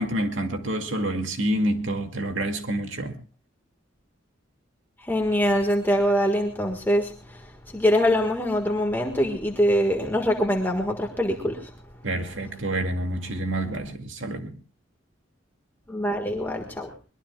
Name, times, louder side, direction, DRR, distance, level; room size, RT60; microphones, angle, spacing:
voice 1, 0.0-3.2 12.0-14.5, right 1 dB, 70° right, 2.3 m, -28 dB
voice 2, 5.0-7.4 7.7-11.7 15.9-16.9, equal, 10° left, 1.6 m, -23 dB
23.0 x 21.0 x 2.3 m
head